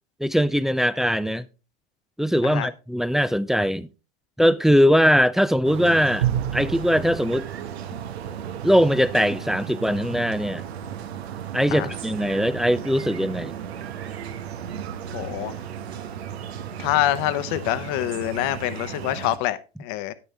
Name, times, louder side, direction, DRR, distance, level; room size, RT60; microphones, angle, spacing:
voice 1, 0.2-1.5 2.2-3.9 4.4-6.3 6.5-7.5 8.6-10.6 11.5-13.5, equal, ahead, 0.4 m, -21 dB
sound 1, 5.6-19.4, right 9 dB, 85° right, 1.0 m, -33 dB
voice 2, 15.1-15.6 16.8-20.1, left 14 dB, 60° left, 1.0 m, -26 dB
9.7 x 9.1 x 3.3 m
hypercardioid pair, 95°, 31 cm